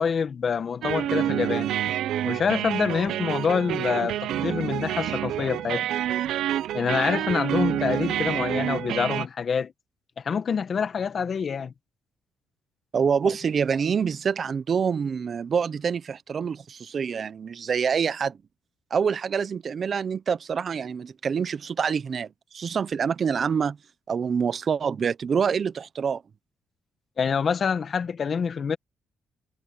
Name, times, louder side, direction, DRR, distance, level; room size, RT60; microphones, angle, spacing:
voice 1, 0.0-1.7 2.2-5.8 6.7-9.7 10.2-11.7 27.2-28.8, left 6 dB, 50° left, 1.5 m, -26 dB
sound 1, 0.8-9.3, right 12 dB, 80° right, 0.9 m, -28 dB
voice 2, 12.9-18.4 18.9-22.3 22.5-23.8 24.1-26.2, right 6 dB, 50° right, 0.9 m, -26 dB
cardioid pair, 90°, 0 cm